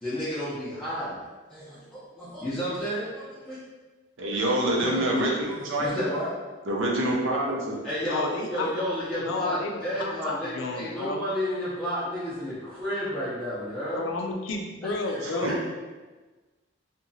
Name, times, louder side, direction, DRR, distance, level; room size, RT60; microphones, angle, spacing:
voice 1, 0.0-1.2 1.5-3.6 4.7-5.1 5.5-6.3 7.6-14.0 14.8-15.7, equal, 5° left, -13 dB, 0.5 m, -32 dB
voice 2, 4.2-5.9 6.7-7.7 15.2-15.7, right 1 dB, 75° right, -2 dB, 0.6 m, -26 dB
voice 3, 8.0-8.7 9.2-11.2 13.9-15.6, left 3 dB, 70° left, 3 dB, 0.4 m, -32 dB
2.8 x 2.2 x 2.6 m, 1.3 s
head